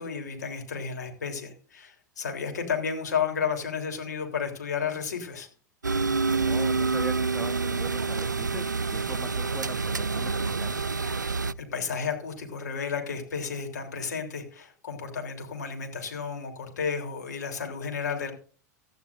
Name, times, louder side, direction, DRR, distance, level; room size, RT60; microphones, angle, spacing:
voice 1, 0.0-5.5 11.2-18.3, left 6 dB, 70° left, 4 dB, 3.5 m, -32 dB
sound 1, 5.8-11.5, right 4 dB, 85° right, 0.4 m, -27 dB
voice 2, 6.2-10.9, right 1 dB, ahead, 7 dB, 1.4 m, -41 dB
16.5 x 13.5 x 2.6 m, 0.41 s
figure-of-eight pair, 85°, 10 cm